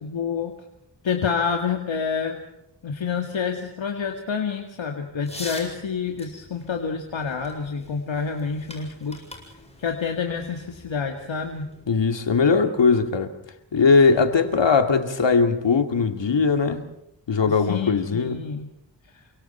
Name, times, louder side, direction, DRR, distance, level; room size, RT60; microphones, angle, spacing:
voice 1, 0.0-0.5 1.0-2.4 2.8-9.2 9.8-11.7 17.5-18.7, left 6 dB, 85° left, 2.3 m, -28 dB
sound 1, 5.2-11.8, left 1 dB, 15° left, 7.5 m, -44 dB
voice 2, 11.9-13.3 13.7-16.8 17.3-18.4, left 5 dB, 70° left, 2.3 m, -20 dB
29.5 x 25.0 x 4.5 m
wide cardioid pair, 100°, 45 cm